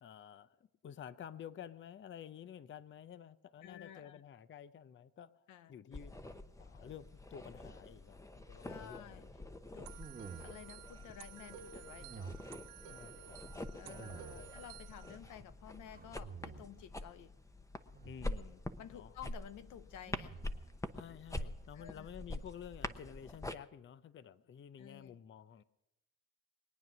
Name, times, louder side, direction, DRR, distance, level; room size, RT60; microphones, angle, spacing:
voice 1, 0.0-6.1 6.6-9.3 12.8-13.6 14.0-14.5 18.0-18.6 18.9-19.1 20.9-25.6, left 9 dB, 40° left, 15 dB, 0.6 m, -52 dB
voice 2, 3.6-4.2 5.5-5.8 8.6-9.3 9.7-10.0 10.4-12.4 13.7-17.3 18.8-20.4 21.7-22.1 24.8-25.2, left 10 dB, 80° left, 13 dB, 0.8 m, -53 dB
sound 1, 5.9-23.5, left 1 dB, 10° left, 0.8 m, -46 dB
sound 2, 9.8-15.2, right 10 dB, 90° right, 0.8 m, -54 dB
sound 3, 9.9-10.9 12.0-12.7 13.8-14.7 15.8-16.9 17.9-18.5 20.1-20.8, right 6 dB, 30° right, 1.3 m, -51 dB
21.5 x 9.2 x 6.1 m, 0.91 s
cardioid pair, 90°, 30 cm